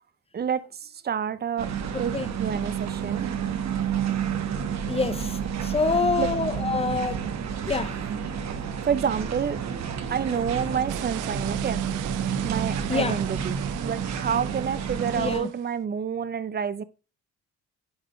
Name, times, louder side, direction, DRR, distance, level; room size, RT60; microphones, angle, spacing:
voice 1, 0.3-1.7 2.0-2.1 2.4-3.3 6.2-6.3 8.8-9.6 10.1-11.8 12.4-16.8, right 7 dB, 35° right, 0.5 m, -28 dB
sound 1, 1.6-15.4, right 7 dB, 65° right, 1.1 m, -30 dB
voice 2, 4.9-7.3 7.7-8.0 10.3-10.4 12.9-13.2 15.2-15.5, left 4 dB, 20° left, 0.6 m, -26 dB
sound 2, 10.9-15.7, right 15 dB, 90° right, 0.5 m, -40 dB
9.6 x 3.7 x 3.3 m
cardioid pair, 90°, 30 cm